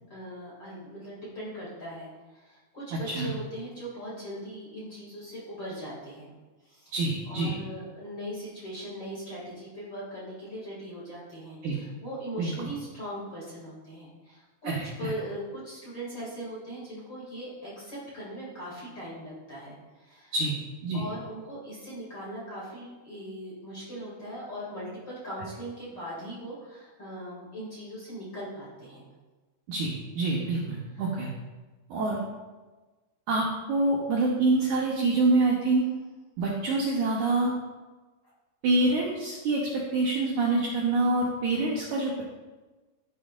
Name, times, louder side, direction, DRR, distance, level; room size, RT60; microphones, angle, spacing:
voice 1, 0.1-6.3 6.6-7.0 7.2-20.3 20.9-29.0 30.9-31.1, equal, 35° left, -8 dB, 2.4 m, -40 dB
voice 2, 2.9-3.3 6.9-7.5 11.6-11.8 12.4-12.5 14.7-14.8 15.0-15.1 20.3-20.6 20.8-21.0 29.7-31.3 31.9-32.2 33.3-35.8 36.4-37.5 38.6-39.6 39.9-42.2, right 2 dB, 75° right, -4 dB, 1.8 m, -26 dB
12.0 x 5.2 x 2.5 m, 1.2 s
omnidirectional pair, 4.5 m